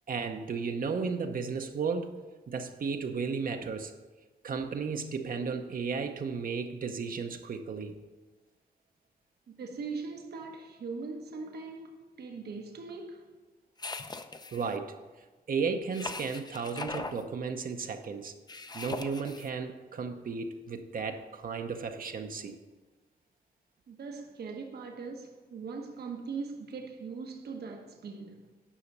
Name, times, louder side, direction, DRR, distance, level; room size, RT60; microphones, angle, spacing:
voice 1, 0.1-2.1 2.5-3.9 4.4-8.0 14.5-15.0 15.5-18.3 18.7-22.6, right 5 dB, 60° right, 0.8 m, -34 dB
voice 2, 9.6-13.3 23.9-28.4, right 4 dB, 85° right, 1.1 m, -40 dB
sound 1, 13.8-14.7 15.9-17.2 18.5-19.5, left 3 dB, 25° left, 0.6 m, -39 dB
10.0 x 5.7 x 5.4 m
cardioid pair, 90°, 16 cm